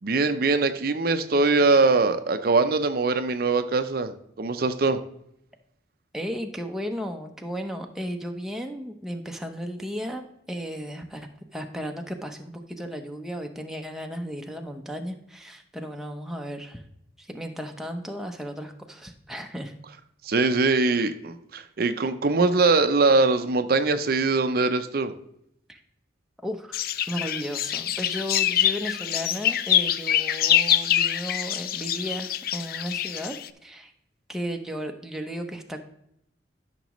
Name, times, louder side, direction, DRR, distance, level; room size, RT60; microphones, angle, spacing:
voice 1, 0.0-5.0 20.2-25.1, right 3 dB, 55° right, 9 dB, 0.5 m, -22 dB
voice 2, 6.1-16.8 17.2-19.7 25.7-25.8 26.4-33.4 33.6-33.9 34.3-35.8, equal, ahead, 3 dB, 0.7 m, -35 dB
sound 1, 26.7-33.5, left 11 dB, 50° left, 0.4 m, -25 dB
13.0 x 6.0 x 3.1 m, 0.75 s
head